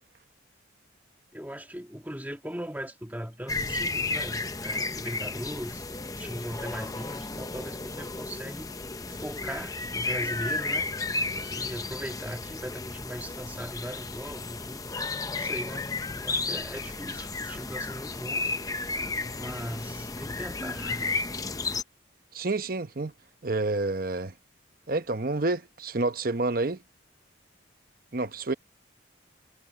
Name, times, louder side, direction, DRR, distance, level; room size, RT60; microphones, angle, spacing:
voice 1, 1.3-5.9 6.2-8.7 9.1-10.9 11.5-14.9 15.3-18.6 19.3-21.2, equal, 10° right, 2.0 m, -39 dB
sound 1, 3.5-21.8, left 3 dB, 20° left, 0.7 m, -33 dB
voice 2, 22.3-23.1 23.4-24.3 24.9-26.8 28.1-28.5, right 2 dB, 45° right, 0.9 m, -28 dB
head